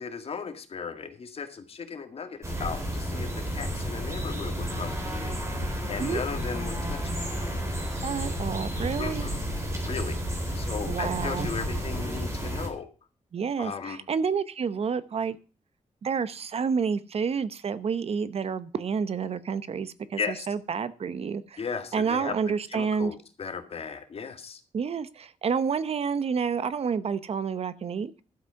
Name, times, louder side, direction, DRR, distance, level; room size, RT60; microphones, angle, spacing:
voice 1, 0.0-5.4 5.9-7.2 9.0-9.4 9.9-10.2 10.5-12.9 13.6-14.0 20.2-20.5 21.6-22.3 22.7-24.6, left 5 dB, 50° left, 8 dB, 1.9 m, -36 dB
sound 1, 2.4-12.7, equal, 25° right, 3.8 m, -31 dB
voice 2, 7.9-9.3 10.9-11.5 13.3-15.4 16.0-21.6 21.9-23.1 24.7-28.1, right 6 dB, 55° right, 15 dB, 0.8 m, -29 dB
12.0 x 8.0 x 5.7 m, 0.36 s
wide cardioid pair, 140°, 12 cm